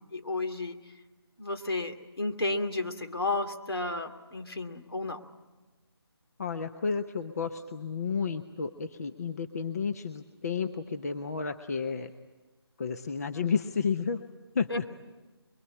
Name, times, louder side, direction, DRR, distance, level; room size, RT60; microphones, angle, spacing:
voice 1, 0.1-0.8 1.4-5.2 14.7-14.8, left 2 dB, 65° left, 5 dB, 2.5 m, -32 dB
voice 2, 6.4-12.1 12.8-14.2 14.5-14.9, left 5 dB, 35° left, 7 dB, 0.9 m, -31 dB
23.0 x 23.0 x 9.8 m, 1.2 s
figure-of-eight pair, 155°, 14 cm